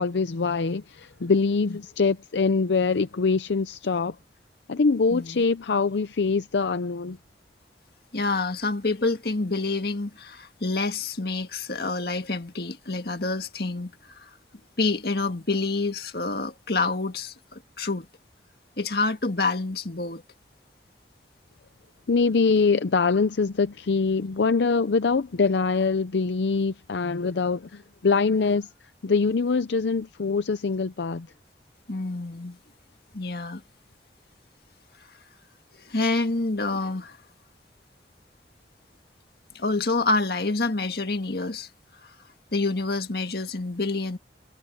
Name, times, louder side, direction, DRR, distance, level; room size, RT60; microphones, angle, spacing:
voice 1, 0.0-4.2 4.7-7.2 22.1-31.3, left 4 dB, 80° left, 0.6 m, -24 dB
voice 2, 5.1-5.4 8.1-13.9 14.2-14.3 14.8-18.1 18.8-20.2 31.9-32.6 33.1-33.6 35.8-37.2 39.6-41.7 42.5-44.2, left 3 dB, 60° left, 1.8 m, -27 dB
head